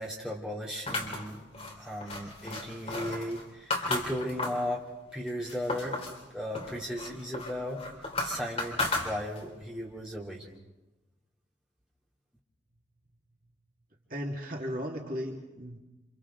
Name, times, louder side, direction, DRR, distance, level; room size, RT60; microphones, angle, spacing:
voice 1, 0.0-1.5 1.8-4.9 5.1-6.0 6.3-7.8 8.2-10.5, equal, 5° right, -5 dB, 3.3 m, -36 dB
sound 1, 0.9-4.7 5.1-6.2 6.5-9.6, left 2 dB, 35° left, 3.3 m, -34 dB
voice 2, 14.1-15.8, equal, 50° right, 0 dB, 2.1 m, -36 dB
29.0 x 26.5 x 3.9 m, 1.1 s
head